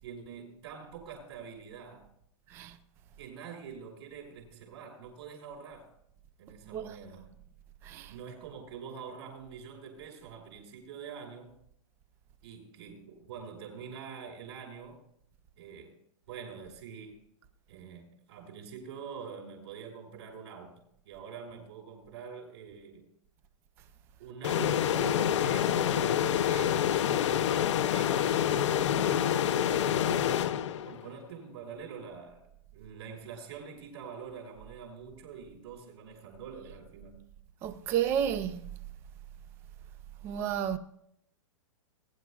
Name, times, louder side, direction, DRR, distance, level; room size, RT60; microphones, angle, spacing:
voice 1, 0.0-2.1 3.2-5.9 6.4-7.3 8.1-11.6 12.4-15.0 15.6-16.0 16.3-17.2 17.7-23.1 24.2-37.2, right 6 dB, 55° right, 5.2 m, -45 dB
sound 1, 24.4-31.1, left 10 dB, 60° left, 0.6 m, -27 dB
voice 2, 37.6-38.6 40.2-40.8, right 9 dB, 15° right, 0.4 m, -31 dB
21.0 x 11.0 x 2.4 m
supercardioid pair, 175°, 17 cm